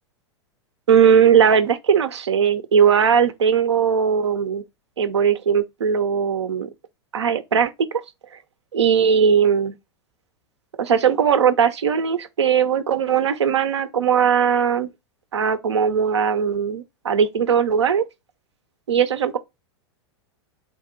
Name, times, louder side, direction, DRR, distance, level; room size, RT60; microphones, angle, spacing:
voice 1, 0.9-4.6 5.0-6.7 7.1-7.9 8.7-9.7 10.8-14.9 15.3-18.0 18.9-19.4, right 7 dB, 80° right, 0.6 m, -19 dB
4.1 x 2.8 x 3.6 m
hypercardioid pair, 95°, 15 cm